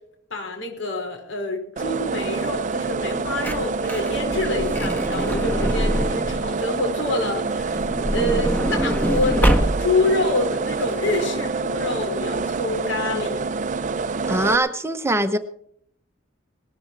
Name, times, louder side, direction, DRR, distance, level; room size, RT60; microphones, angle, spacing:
voice 1, 0.3-7.8 8.1-13.4, left 2 dB, 80° left, 5.2 m, -26 dB
sound 1, 1.8-14.6, right 4 dB, 40° right, 0.5 m, -27 dB
Truck / Door, 3.0-6.5 7.6-10.1 10.8-10.9 11.1-11.3, equal, 10° left, 1.5 m, -24 dB
voice 2, 14.3-15.4, right 1 dB, 15° right, 0.9 m, -22 dB
19.5 x 13.5 x 4.4 m
head